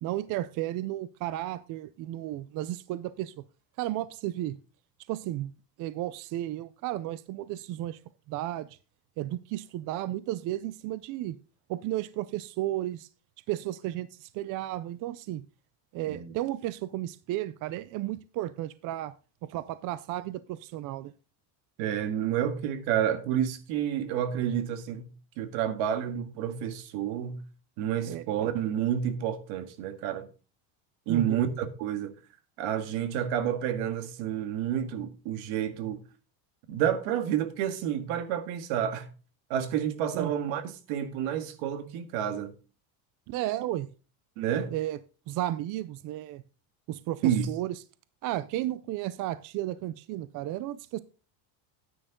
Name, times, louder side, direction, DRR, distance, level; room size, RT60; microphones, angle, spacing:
voice 1, 0.0-3.3 3.8-4.6 5.1-5.5 5.8-8.0 8.3-8.8 9.2-11.4 11.7-13.1 13.5-15.4 15.9-19.1 19.4-21.1 28.0-28.3 31.1-31.5 40.1-40.3 43.3-43.9 44.7-45.0 45.3-46.4 46.9-47.8 48.2-51.0, right 14 dB, 45° right, 0.5 m, -33 dB
voice 2, 21.8-25.1 25.4-27.4 27.8-30.3 31.1-32.1 32.6-36.0 36.7-39.1 39.5-42.5 44.4-44.7 47.2-47.5, right 9 dB, 70° right, 2.0 m, -29 dB
9.9 x 9.3 x 3.7 m
cardioid pair, 165°, 48 cm